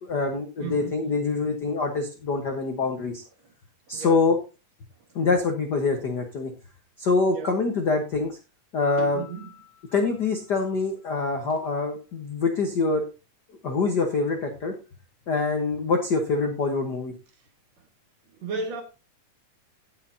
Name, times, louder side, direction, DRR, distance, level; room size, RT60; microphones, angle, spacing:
voice 1, 0.0-3.2 3.9-4.4 5.1-6.5 7.0-8.4 8.7-9.2 9.9-13.0 13.6-14.7 15.3-17.1, left 3 dB, 60° left, 1.1 m, -25 dB
voice 2, 0.6-1.0 3.9-4.2 7.3-7.5 9.0-9.5 18.4-18.8, right 4 dB, 60° right, 2.7 m, -34 dB
Piano, 8.8-11.6, left 8 dB, 15° left, 3.3 m, -51 dB
17.5 x 6.6 x 2.7 m
omnidirectional pair, 3.7 m